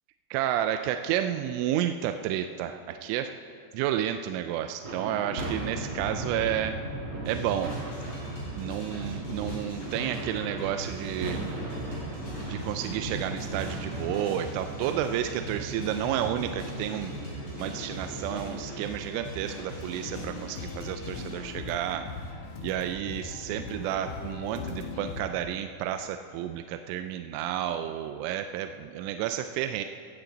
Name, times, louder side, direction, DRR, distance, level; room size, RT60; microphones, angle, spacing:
voice 1, 0.3-3.3 3.7-6.8 7.3-7.8 8.6-11.5 12.5-17.1 17.6-22.1 22.3-29.8, right 11 dB, 85° right, 8 dB, 3.0 m, -31 dB
sound 1, 4.8-21.2, right 1 dB, 45° right, 1.9 m, -37 dB
sound 2, 7.2-21.5, equal, 30° left, 3.4 m, -43 dB
sound 3, 19.8-25.2, left 3 dB, 60° left, 3.4 m, -39 dB
18.0 x 15.0 x 3.9 m, 2.3 s
omnidirectional pair, 5.6 m